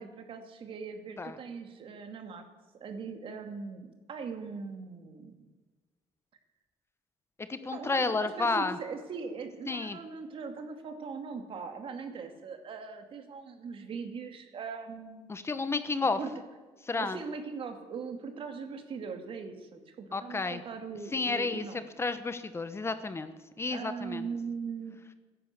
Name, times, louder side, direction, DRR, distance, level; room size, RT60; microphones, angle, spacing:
voice 1, 0.0-2.5 2.8-5.3 7.7-15.3 16.2-16.3 17.0-21.8 23.7-25.0, right 5 dB, 50° right, 6 dB, 2.4 m, -40 dB
voice 2, 7.5-8.8 9.7-10.0 15.3-16.2 16.9-17.2 20.1-20.6 21.1-21.6 22.0-24.3, left 3 dB, 20° left, 11 dB, 1.1 m, -31 dB
15.0 x 11.0 x 8.3 m, 1.3 s
cardioid pair, 105°, 11 cm